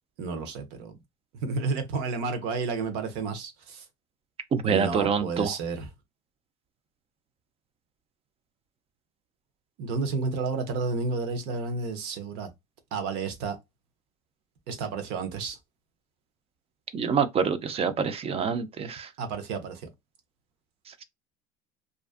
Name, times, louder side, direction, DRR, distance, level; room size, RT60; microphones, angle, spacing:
voice 1, 0.2-1.0 1.4-3.8 4.6-5.9 9.8-12.5 12.9-13.6 14.7-15.6 19.2-19.9, right 4 dB, 65° right, 0.7 m, -31 dB
voice 2, 4.5-5.5 16.9-19.1, right 6 dB, 30° right, 0.5 m, -26 dB
2.5 x 2.2 x 2.4 m
hypercardioid pair, 85°, 19 cm